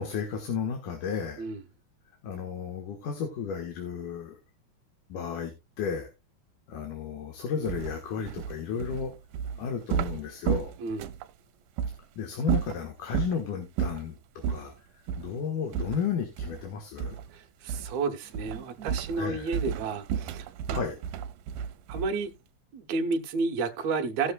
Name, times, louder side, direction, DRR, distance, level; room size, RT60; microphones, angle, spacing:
voice 1, 0.0-1.5 2.2-4.4 5.1-6.1 6.7-9.1 9.6-10.7 12.2-14.2 14.5-14.7 15.2-17.2 19.2-19.6 20.7-21.0, left 6 dB, 80° left, 3.0 m, -33 dB
sound 1, 7.7-11.3 11.8-12.0 12.4-13.4 13.8-14.1 14.4-14.7 15.1-15.3 15.7-16.7 17.0-17.3 17.7-18.0 18.3-22.3, right 8 dB, 90° right, 2.2 m, -32 dB
voice 2, 10.8-11.1 17.3-20.8 21.9-22.3 22.7-24.3, right 4 dB, 65° right, 2.2 m, -31 dB
18.0 x 6.3 x 2.3 m
omnidirectional pair, 3.6 m